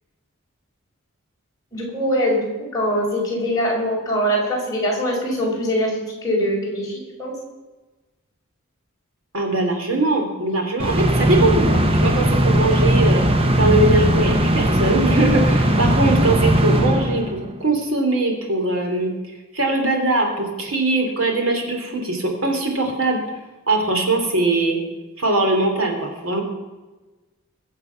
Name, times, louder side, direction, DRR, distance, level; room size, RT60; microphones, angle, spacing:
voice 1, 1.7-7.3, equal, 15° left, -4 dB, 4.8 m, -23 dB
voice 2, 9.3-19.1 19.5-23.2 23.7-24.8 25.2-26.4, right 2 dB, 70° right, 2 dB, 3.1 m, -21 dB
sound 1, 10.8-17.6, right 1 dB, 25° right, 0.9 m, -18 dB
21.5 x 7.3 x 5.8 m, 1.2 s
head